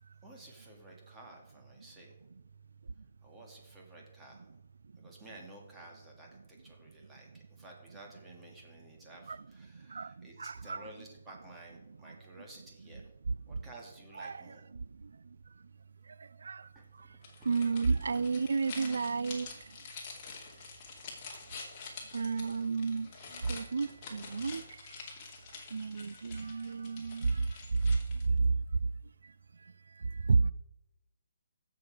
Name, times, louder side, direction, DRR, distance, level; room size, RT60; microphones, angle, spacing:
voice 1, 0.2-2.1 3.2-4.5 5.0-13.1 13.5-14.7 16.7-17.2, right 1 dB, 10° right, 2.2 m, -53 dB
voice 2, 9.9-10.9 13.5-13.6 14.2-14.4 14.7-14.8 16.1-16.7 17.0-17.1 17.4-19.5 22.1-24.8 25.7-27.5 28.4-28.5 30.0-30.5, right 4 dB, 85° right, 0.3 m, -32 dB
sound 1, 17.2-28.4, left 4 dB, 25° left, 2.5 m, -47 dB
16.0 x 6.8 x 4.8 m
hypercardioid pair, 165°, 0 cm